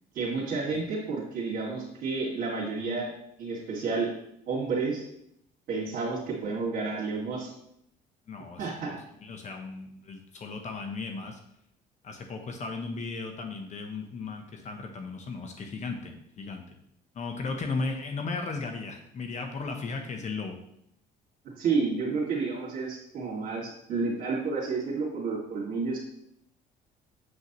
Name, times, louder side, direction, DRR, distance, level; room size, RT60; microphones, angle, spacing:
voice 1, 0.1-3.1 3.4-4.1 4.5-5.0 5.7-7.5 8.6-9.0 21.4-26.0, right 4 dB, 60° right, -8 dB, 2.2 m, -30 dB
voice 2, 8.3-8.7 9.2-11.4 12.0-16.6 17.1-20.6, left 4 dB, 40° left, 4 dB, 0.9 m, -36 dB
7.6 x 5.8 x 3.0 m, 0.75 s
cardioid pair, 100°, 18 cm